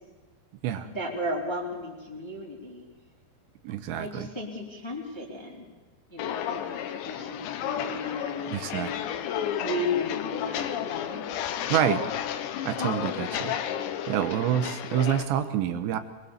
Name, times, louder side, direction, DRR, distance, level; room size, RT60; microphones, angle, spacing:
voice 1, 0.6-2.9 4.0-5.7 6.1-8.9 9.6-11.3 11.7-11.9 12.8-12.9 14.2-14.5, left 1 dB, 10° left, -2 dB, 2.2 m, -35 dB
voice 2, 3.6-4.3 8.5-8.9 11.7-12.0 12.6-13.6 14.1-16.0, right 10 dB, 80° right, 9 dB, 3.0 m, -27 dB
Walk footsteps, 6.2-15.2, left 10 dB, 80° left, 3.2 m, -32 dB
23.0 x 21.0 x 7.2 m, 1.2 s
omnidirectional pair, 5.3 m